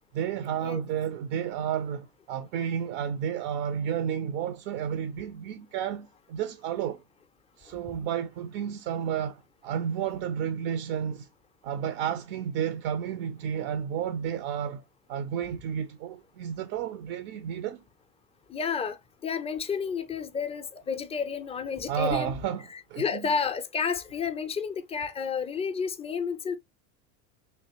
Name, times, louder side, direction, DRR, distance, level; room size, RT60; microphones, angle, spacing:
voice 1, 0.1-7.0 7.6-11.3 11.6-14.8 15.1-17.8 21.9-23.3, right 8 dB, 60° right, 0.6 m, -31 dB
voice 2, 18.5-19.0 19.2-22.3 23.0-26.6, left 6 dB, 15° left, 0.3 m, -31 dB
3.2 x 2.9 x 2.7 m
hypercardioid pair, 90°, 44 cm